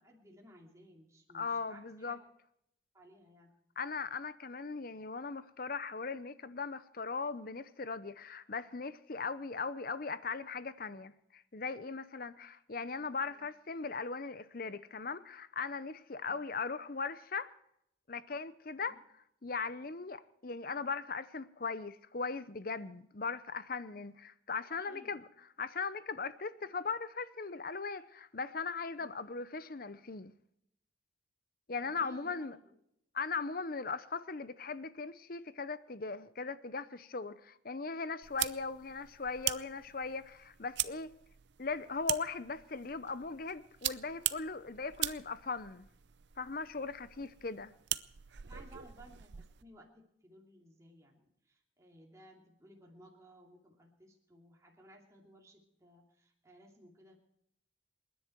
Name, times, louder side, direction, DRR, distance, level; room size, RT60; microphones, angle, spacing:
voice 1, 0.0-2.3 2.9-3.5 13.3-13.5 16.2-16.5 18.8-18.9 24.7-25.2 29.0-29.1 31.8-32.8 47.2-47.3 48.4-57.2, equal, 15° right, 2.7 m, -58 dB
voice 2, 1.3-2.2 3.8-17.5 18.1-19.0 19.4-25.2 25.6-30.3 31.7-32.6 33.1-41.1 41.6-45.9 46.4-47.7, left 4 dB, 45° left, 0.7 m, -39 dB
sound 1, 38.2-49.6, right 14 dB, 65° right, 0.6 m, -41 dB
28.0 x 10.5 x 4.6 m
head